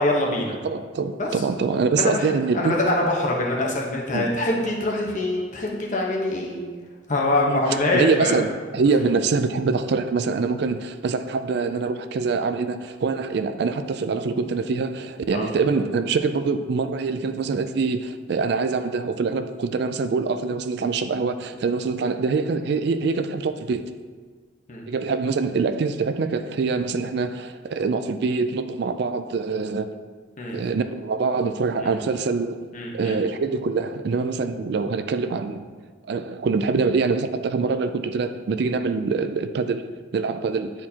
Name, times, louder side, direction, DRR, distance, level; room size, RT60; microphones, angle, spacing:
voice 1, 0.0-0.6 1.2-1.3 2.0-6.6 7.1-8.4 15.3-15.5 24.7-24.8 30.4-30.6 31.8-31.9 32.7-33.2, left 2 dB, 40° left, -1 dB, 1.1 m, -24 dB
voice 2, 0.6-2.7 4.1-4.3 7.5-7.6 7.9-8.5 8.7-23.8 24.9-29.9 30.5-32.7 32.9-35.6 36.1-40.7, right 4 dB, 60° right, 9 dB, 0.4 m, -24 dB
9.6 x 4.5 x 2.8 m, 1.5 s
head